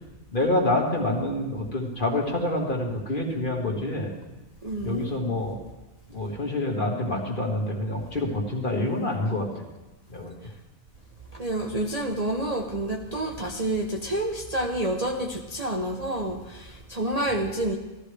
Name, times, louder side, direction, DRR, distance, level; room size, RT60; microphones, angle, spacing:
voice 1, 0.3-4.1 4.8-5.6 6.1-9.5 10.1-10.3, left 1 dB, 40° left, -1 dB, 1.9 m, -27 dB
voice 2, 4.6-5.5 11.3-17.8, right 1 dB, 35° right, 0 dB, 0.7 m, -29 dB
15.5 x 13.0 x 3.4 m, 1.0 s
omnidirectional pair, 1.4 m